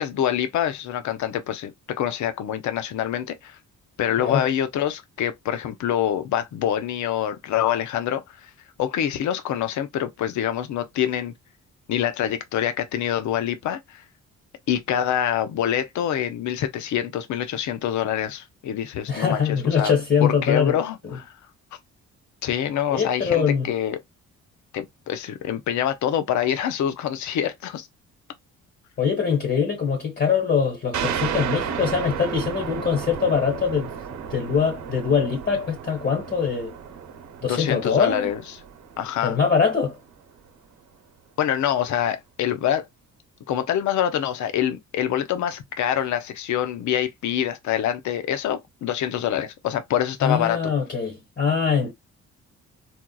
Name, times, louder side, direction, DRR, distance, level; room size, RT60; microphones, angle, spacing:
voice 1, 0.0-3.6 4.0-8.5 8.8-11.3 11.9-14.0 14.7-19.9 20.2-21.3 22.4-24.0 24.7-27.9 37.5-38.4 39.0-39.4 41.4-42.9 43.5-50.7, left 10 dB, 70° left, 0.7 m, -25 dB
voice 2, 19.1-20.8 21.1-21.2 22.9-23.7 29.0-33.9 34.3-36.7 37.4-38.3 39.2-40.0 50.2-51.9, left 6 dB, 35° left, 1.4 m, -23 dB
sound 1, 30.9-40.1, right 7 dB, 65° right, 0.8 m, -33 dB
4.4 x 2.3 x 2.3 m
cardioid pair, 90°, 30 cm